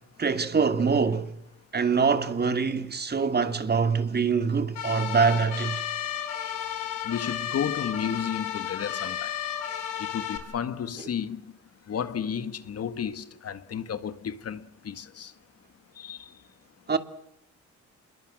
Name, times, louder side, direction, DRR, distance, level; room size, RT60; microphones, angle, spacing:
voice 1, 0.2-1.3 1.7-5.8 16.9-17.0, right 5 dB, 35° right, 2.7 m, -24 dB
sound 1, 4.8-10.4, left 10 dB, 90° left, 4.8 m, -33 dB
voice 2, 7.0-9.3 10.0-11.4 11.9-15.3 16.0-16.3, left 8 dB, 55° left, 1.7 m, -32 dB
27.5 x 22.0 x 7.6 m
cardioid pair, 90°, 30 cm